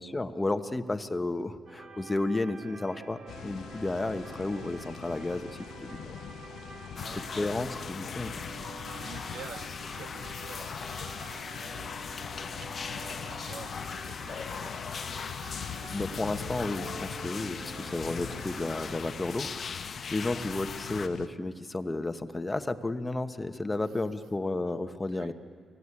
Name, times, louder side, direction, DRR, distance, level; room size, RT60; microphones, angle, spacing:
voice 1, 0.0-6.1 7.4-8.3 15.9-25.3, left 2 dB, 15° left, 9 dB, 1.2 m, -32 dB
sound 1, 1.7-19.0, right 3 dB, 55° right, 5.5 m, -47 dB
sound 2, 3.3-21.3, left 9 dB, 75° left, 0.6 m, -43 dB
voice 2, 6.9-7.5 8.9-15.3 23.8-24.0 25.1-25.3, right 7 dB, 75° right, 7 dB, 2.0 m, -50 dB
sound 3, 7.0-21.1, left 5 dB, 45° left, 0.9 m, -40 dB
29.0 x 19.5 x 9.8 m, 2.1 s
cardioid pair, 120°, 0 cm